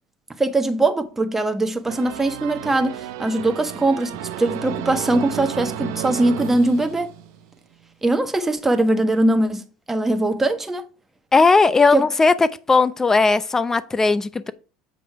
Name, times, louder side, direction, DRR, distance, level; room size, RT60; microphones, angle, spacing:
voice 1, 0.4-7.1 8.0-10.8 11.9-12.1, right 2 dB, 15° right, 1.3 m, -21 dB
sound 1, 1.9-7.5, right 11 dB, 70° right, 0.9 m, -32 dB
voice 2, 11.3-12.3 12.7-14.5, left 4 dB, 20° left, 0.7 m, -17 dB
7.7 x 5.0 x 4.7 m
hypercardioid pair, 80°, 2 cm